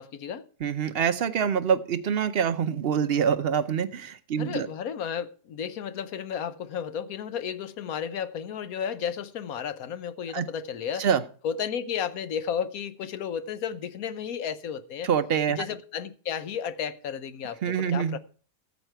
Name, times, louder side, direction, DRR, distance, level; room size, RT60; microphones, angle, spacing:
voice 1, 0.0-0.4 4.4-11.1 11.4-15.1 15.5-18.2, left 8 dB, 65° left, 1.1 m, -33 dB
voice 2, 0.6-4.7 10.3-10.4 11.0-11.2 15.0-15.7 17.6-18.2, right 7 dB, 60° right, 0.6 m, -25 dB
13.5 x 8.1 x 4.5 m
omnidirectional pair, 1.8 m